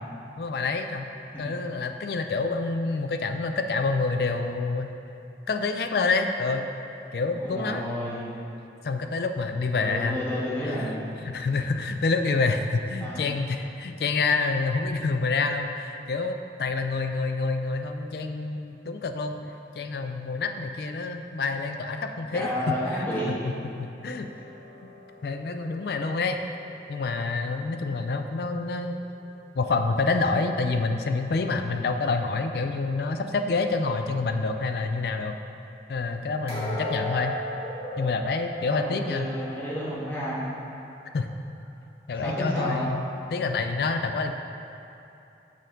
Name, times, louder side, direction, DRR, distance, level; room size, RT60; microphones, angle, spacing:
voice 1, 0.4-1.1 1.4-4.9 5.5-6.6 7.1-7.8 8.8-10.2 10.6-10.9 11.2-19.4 19.8-22.5 22.9-23.1 23.4-24.3 24.8-24.9 25.2-26.4 26.9-29.0 29.6-35.3 35.9-37.4 38.0-39.3 41.1-41.3 42.1-43.0 43.3-44.3, left 3 dB, 60° left, 6 dB, 0.4 m, -27 dB
voice 2, 7.3-8.3 9.8-11.2 13.0-13.2 22.3-23.3 38.7-40.5 42.2-42.8, left 1 dB, 10° left, -9 dB, 1.4 m, -31 dB
sound 1, 24.0-27.1 36.5-40.4 40.8-41.0 41.6-41.7, left 1 dB, 35° left, 1.2 m, -38 dB
6.4 x 4.2 x 5.1 m, 2.8 s
head